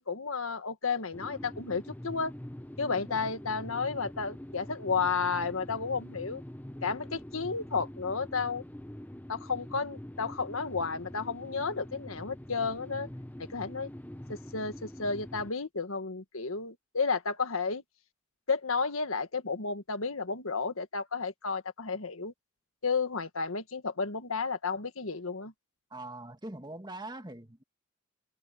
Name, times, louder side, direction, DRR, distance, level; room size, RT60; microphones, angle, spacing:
voice 1, 0.0-2.3 2.8-6.4 6.8-8.6 9.3-13.1 13.5-13.9 14.3-17.8 18.5-22.3 22.8-25.5, left 4 dB, 80° left, 1.7 m, -32 dB
sound 1, 1.1-15.5, left 1 dB, 10° left, 0.7 m, -44 dB
voice 2, 2.8-3.3 25.9-27.6, right 2 dB, 20° right, 1.7 m, -43 dB
head